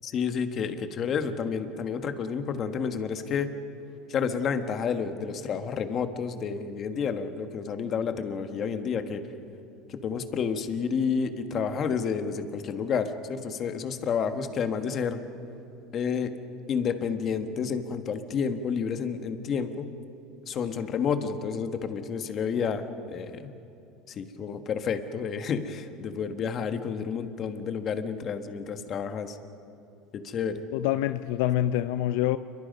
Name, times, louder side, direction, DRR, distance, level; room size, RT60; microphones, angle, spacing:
voice 1, 0.0-3.6 4.1-9.2 9.9-15.2 15.9-16.3 16.7-19.9 20.5-22.8 23.1-23.5 24.2-29.4 30.1-30.7, left 6 dB, 35° left, 1.5 m, -30 dB
voice 2, 30.7-32.4, left 13 dB, 75° left, 0.6 m, -26 dB
29.0 x 23.0 x 5.5 m
cardioid pair, 150°, 0 cm